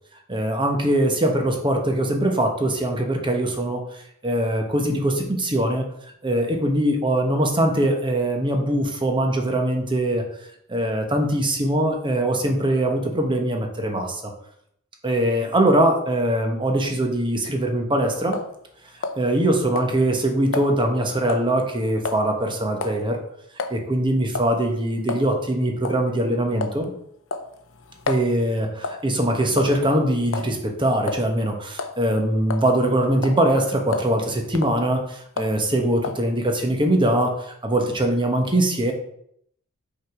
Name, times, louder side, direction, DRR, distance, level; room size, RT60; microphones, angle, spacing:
voice 1, 0.3-3.8 4.2-5.9 6.2-10.2 10.7-14.3 15.0-18.4 19.2-23.2 23.7-26.9 28.1-37.3 37.6-38.9, right 1 dB, 20° right, 3 dB, 1.1 m, -22 dB
sound 1, 18.3-18.5 19.0-19.5 19.8-19.9 20.5-20.7 21.3-21.5 22.1-22.2 22.8-23.0 23.6-23.8 24.4-24.6 25.1-25.3 25.8-26.0 26.6-26.8 27.3-28.3 28.8-29.1 29.6-29.9 30.3-30.5 31.1-31.2 31.7-32.0 32.5-32.9 33.2-33.4 33.9-34.1 34.5-34.8 35.4-35.6 36.0-36.2, left 3 dB, 60° left, 0.6 m, -29 dB
5.6 x 4.8 x 4.7 m, 0.70 s
head